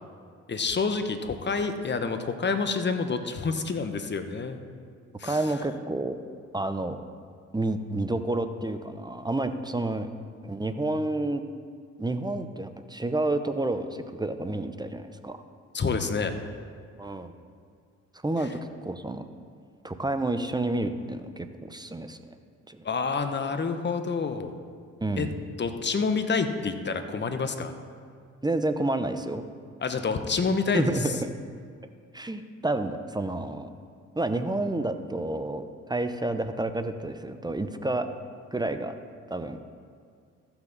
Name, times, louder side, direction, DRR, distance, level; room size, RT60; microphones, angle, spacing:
voice 1, 0.5-4.6 5.2-5.4 15.7-16.3 22.8-24.5 25.2-25.3 25.6-27.7 29.8-30.9, left 4 dB, 35° left, 8 dB, 1.0 m, -28 dB
voice 2, 5.2-6.2 6.5-7.0 7.5-10.1 10.4-11.4 12.0-15.4 17.0-17.3 18.2-18.5 18.8-19.2 19.8-22.2 22.7-22.8 25.0-25.3 28.4-29.4 30.7-31.1 32.1-33.7 34.2-38.1 38.5-38.9 39.3-39.6, right 2 dB, 10° right, 9 dB, 0.8 m, -29 dB
15.0 x 5.9 x 4.0 m, 2.2 s
supercardioid pair, 55°, 33 cm